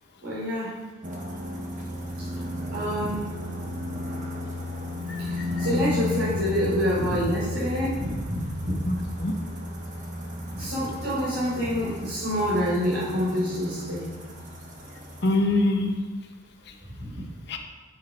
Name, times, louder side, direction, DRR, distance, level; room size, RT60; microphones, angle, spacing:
voice 1, 0.2-0.7 2.7-3.3 5.2-8.8 10.5-14.1 17.0-17.1, equal, 80° right, -11 dB, 3.7 m, -27 dB
sound 1, 1.0-15.4, left 1 dB, 40° right, 1.5 m, -34 dB
voice 2, 5.1-5.7 8.8-9.4 15.2-16.0 17.5-17.6, left 2 dB, 55° left, 3 dB, 1.1 m, -25 dB
10.5 x 6.7 x 5.4 m, 1.3 s
head